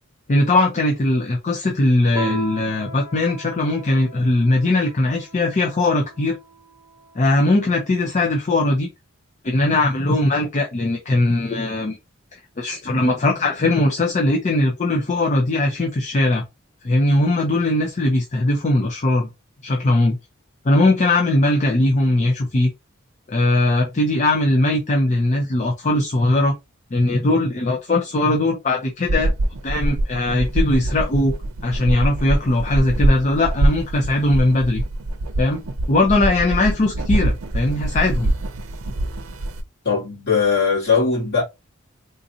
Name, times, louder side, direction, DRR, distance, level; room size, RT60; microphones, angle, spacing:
voice 1, 0.3-6.4 7.1-8.9 9.4-12.0 12.3-16.4 16.8-19.3 19.6-20.2 20.6-22.7 23.3-26.5 26.9-29.3 29.6-31.3 31.6-34.8 35.4-35.6 35.9-38.3, left 2 dB, 35° left, 0.5 m, -19 dB
Piano, 2.2-7.1, right 5 dB, 35° right, 0.9 m, -36 dB
sound 1, 29.0-39.6, right 1 dB, 80° right, 0.6 m, -23 dB
voice 2, 39.8-41.4, left 5 dB, 55° left, 2.4 m, -19 dB
3.8 x 2.5 x 2.7 m
head